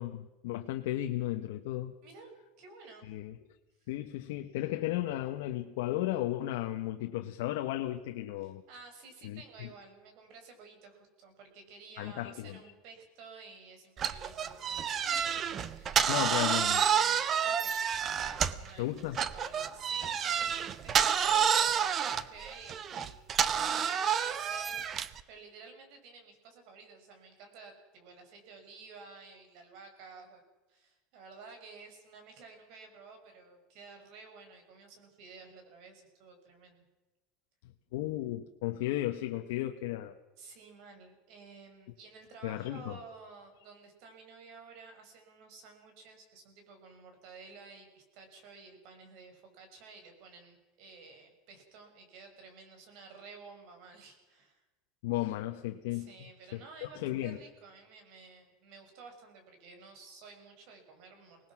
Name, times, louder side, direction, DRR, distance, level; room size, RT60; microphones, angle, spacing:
voice 1, 0.0-2.0 3.1-3.3 3.9-8.6 9.2-9.7 12.0-12.6 16.1-16.8 18.8-19.2 37.9-40.2 42.4-43.0 55.0-56.1 56.5-57.4, left 14 dB, 80° left, 5 dB, 1.1 m, -34 dB
voice 2, 2.0-3.1 3.8-3.9 8.4-15.3 15.6-16.1 16.4-30.4 30.7-36.8 40.4-54.6 55.9-61.5, right 4 dB, 60° right, 5 dB, 5.8 m, -52 dB
sound 1, 14.0-18.7 19.1-25.2, right 8 dB, 30° right, 0.9 m, -29 dB
24.5 x 19.0 x 6.1 m, 1.1 s
supercardioid pair, 150°, 0 cm